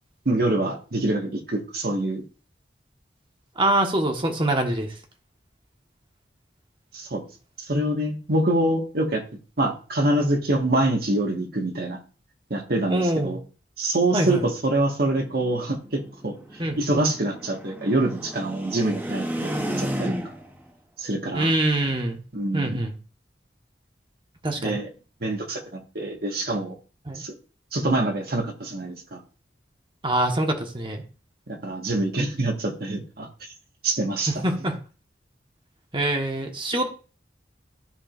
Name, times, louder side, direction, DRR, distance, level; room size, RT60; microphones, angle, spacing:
voice 1, 0.2-2.2 6.9-7.2 7.7-9.2 9.6-12.0 12.5-13.4 13.8-16.3 16.8-19.5 19.8-20.1 21.0-21.5 22.3-22.8 24.6-24.9 25.2-26.7 27.1-27.3 27.7-29.2 31.5-33.3 33.8-34.4, right 1 dB, 60° right, 3 dB, 1.6 m, -25 dB
voice 2, 3.6-4.9 12.9-13.4 14.1-14.4 16.6-16.8 21.3-22.2 22.5-22.9 24.4-24.8 27.1-27.2 30.0-31.0 34.3-34.8 35.9-36.9, right 1 dB, 30° right, 3 dB, 1.4 m, -24 dB
sound 1, 15.3-20.6, equal, 10° right, 0.9 m, -33 dB
13.5 x 4.9 x 2.5 m, 0.36 s
head